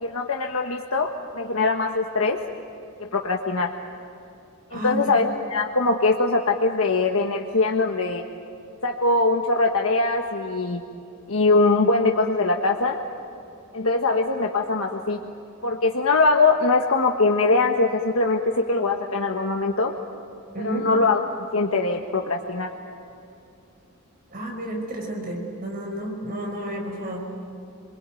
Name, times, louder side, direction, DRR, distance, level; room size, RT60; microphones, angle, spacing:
voice 1, 0.0-2.4 3.0-3.7 4.7-8.2 8.8-10.8 11.3-13.0 13.7-15.2 15.6-19.9 20.6-21.2 21.5-22.7, left 3 dB, 70° left, 1 dB, 1.4 m, -22 dB
voice 2, 4.7-5.2 20.5-20.9 24.3-27.3, right 1 dB, 40° right, 1 dB, 5.2 m, -31 dB
28.5 x 22.0 x 9.2 m, 2.7 s
head